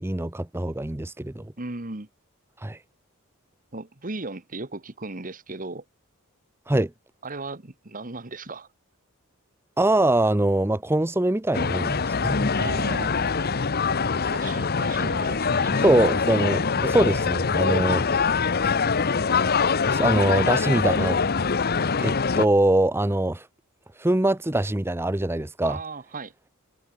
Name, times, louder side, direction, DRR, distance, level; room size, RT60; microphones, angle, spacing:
voice 1, 0.0-1.5 2.6-2.8 6.7-6.9 9.8-12.6 15.8-18.0 19.8-21.2 22.0-23.5 24.0-25.8, right 1 dB, 10° right, 0.6 m, -23 dB
voice 2, 1.6-2.1 3.7-5.8 7.2-8.7 12.6-13.1 14.3-15.9 25.6-26.3, right 3 dB, 40° right, 1.6 m, -36 dB
sound 1, 11.5-22.5, left 5 dB, 45° left, 0.8 m, -24 dB
head